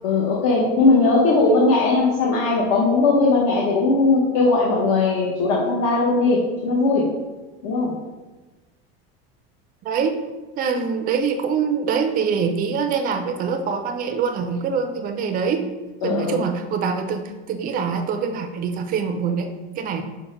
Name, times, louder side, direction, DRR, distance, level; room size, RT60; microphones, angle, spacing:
voice 1, 0.0-7.1 7.6-8.0 16.0-16.4, left 3 dB, 60° left, -4 dB, 0.9 m, -19 dB
voice 2, 9.8-10.1 10.6-15.6 16.0-20.0, right 6 dB, 30° right, 5 dB, 0.4 m, -24 dB
5.6 x 2.1 x 4.2 m, 1.2 s
supercardioid pair, 145°, 30 cm